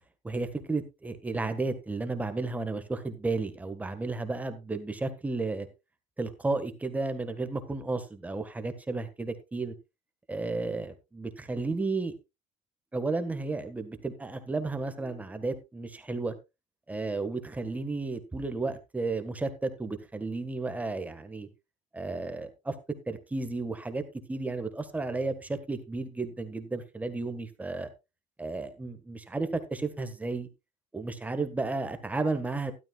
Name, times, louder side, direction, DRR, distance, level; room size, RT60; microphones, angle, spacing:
voice 1, 0.2-5.7 6.2-9.7 10.3-12.1 12.9-16.3 16.9-21.5 21.9-22.7 23.1-24.0 24.3-27.9 28.4-30.5 30.9-32.7, right 3 dB, 10° right, 9 dB, 1.5 m, -33 dB
12.5 x 12.0 x 2.4 m, 0.25 s
cardioid pair, 125°, 14 cm